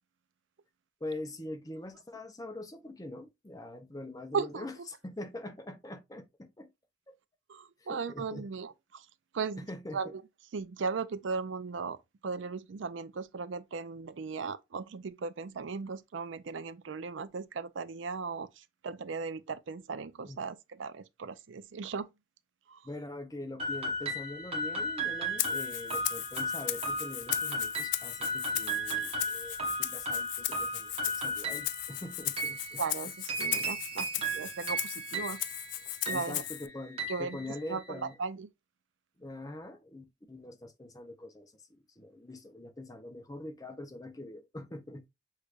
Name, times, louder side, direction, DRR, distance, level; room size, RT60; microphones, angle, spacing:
voice 1, 1.0-6.7 7.1-7.2 7.8-8.5 9.6-10.1 20.2-20.4 22.8-32.8 36.1-38.2 39.2-45.1, left 1 dB, 20° left, 0.6 m, -43 dB
voice 2, 4.3-4.7 7.5-9.1 9.3-10.2 10.5-12.0 12.2-22.1 22.7-22.8 32.8-35.4 36.1-36.4 37.1-37.4 37.7-38.5, right 5 dB, 80° right, 0.5 m, -37 dB
sound 1, 23.6-38.0, right 1 dB, 30° right, 1.1 m, -36 dB
Rattle (instrument), 25.4-36.7, left 15 dB, 70° left, 0.3 m, -37 dB
6.5 x 3.2 x 2.4 m
head